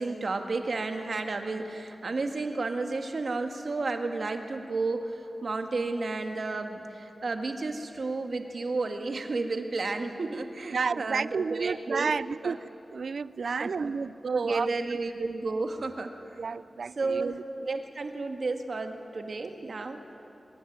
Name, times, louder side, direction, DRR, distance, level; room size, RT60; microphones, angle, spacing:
voice 1, 0.0-12.1 12.4-12.6 13.4-13.9 14.3-16.4 17.0-20.0, right 3 dB, 55° right, 2.0 m, -32 dB
voice 2, 10.7-12.6 12.9-14.7 16.4-17.4, right 5 dB, 75° right, 0.5 m, -31 dB
24.0 x 20.5 x 9.4 m
wide cardioid pair, 125°, 0 cm